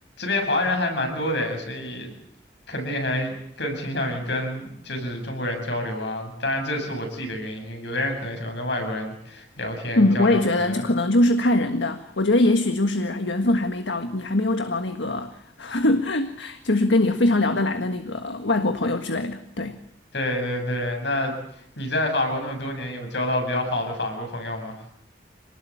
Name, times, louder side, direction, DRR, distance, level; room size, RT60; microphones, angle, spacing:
voice 1, 0.2-2.1 2.7-10.8 20.1-21.4 21.8-24.7, left 1 dB, 70° left, 7.7 m, -28 dB
voice 2, 9.9-19.8, left 2 dB, 85° left, 1.6 m, -22 dB
27.0 x 19.5 x 8.7 m
head